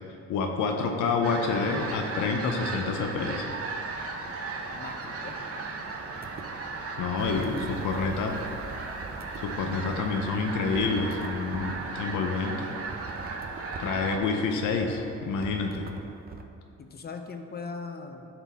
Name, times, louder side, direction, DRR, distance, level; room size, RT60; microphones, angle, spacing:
voice 1, 0.3-3.6 7.0-8.4 9.4-12.7 13.8-15.9, left 4 dB, 85° left, 3 dB, 0.7 m, -28 dB
sound 1, 1.2-14.2, right 3 dB, 50° right, 0.9 m, -36 dB
voice 2, 4.6-5.4 7.5-8.2 16.8-18.3, left 4 dB, 30° left, 5 dB, 0.7 m, -40 dB
sound 2, 6.2-6.5 7.0-8.2 8.5-10.4 10.7-12.2 12.9-14.2 14.6-15.2 15.4-16.4, right 3 dB, 30° right, 0.6 m, -44 dB
sound 3, 7.2-11.9, right 4 dB, 75° right, 0.8 m, -46 dB
11.0 x 4.0 x 3.5 m, 2.6 s
cardioid pair, 90°, 30 cm